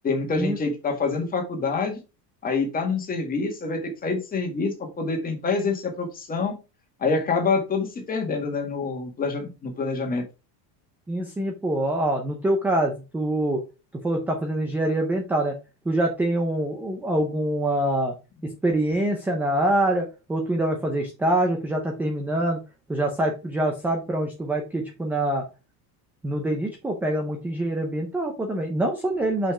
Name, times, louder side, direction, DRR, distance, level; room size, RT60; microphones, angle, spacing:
voice 1, 0.0-2.0 2.4-6.6 7.0-10.2, left 4 dB, 20° left, 3 dB, 1.8 m, -26 dB
voice 2, 11.1-13.6 14.0-15.6 15.9-18.2 18.4-22.6 22.9-25.4 26.2-29.5, right 1 dB, 5° right, 3 dB, 0.4 m, -25 dB
5.6 x 5.5 x 4.8 m, 0.29 s
cardioid pair, 170°, 47 cm